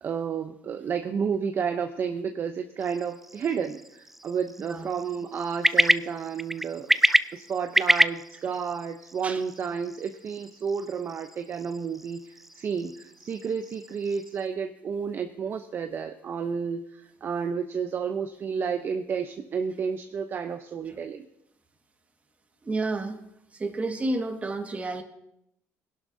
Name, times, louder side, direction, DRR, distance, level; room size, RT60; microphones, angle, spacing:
voice 1, 0.0-6.9 7.3-21.3, right 6 dB, 45° right, 6 dB, 0.7 m, -31 dB
sound 1, 2.8-14.5, right 1 dB, 5° right, 0.3 m, -29 dB
voice 2, 22.6-23.2 23.5-25.0, right 2 dB, 25° right, 5 dB, 1.7 m, -30 dB
21.0 x 11.0 x 2.7 m, 0.80 s
cardioid pair, 95°, 5 cm